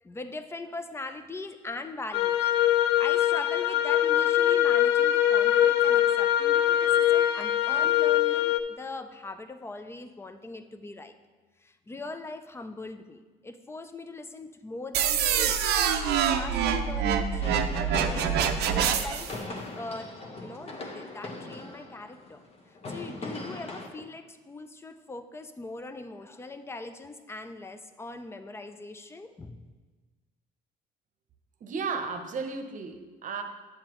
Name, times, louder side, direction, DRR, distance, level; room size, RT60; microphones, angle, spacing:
voice 1, 0.0-11.1 11.6-15.6 16.3-19.3 19.8-20.1 20.4-22.4 22.9-29.6, left 3 dB, 15° left, 9 dB, 0.5 m, -41 dB
sound 1, 2.1-8.6, left 11 dB, 85° left, 0.4 m, -23 dB
sound 2, 14.9-19.3, right 8 dB, 75° right, 0.6 m, -25 dB
sound 3, 17.4-23.9, left 2 dB, 35° left, 1.0 m, -40 dB
voice 2, 31.6-33.4, right 5 dB, 50° right, 6 dB, 0.8 m, -34 dB
8.1 x 7.6 x 3.0 m, 1.3 s
cardioid pair, 110°, 17 cm